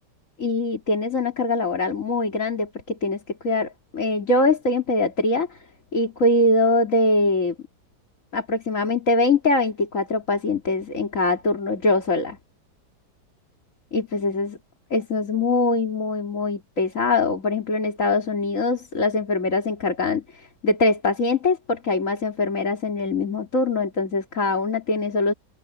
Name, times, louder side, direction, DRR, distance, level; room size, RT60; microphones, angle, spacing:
voice 1, 0.4-5.6 5.9-7.5 8.3-12.4 13.9-14.6 14.9-25.3, left 2 dB, 50° left, 3.0 m, -23 dB
omnidirectional pair, 1.9 m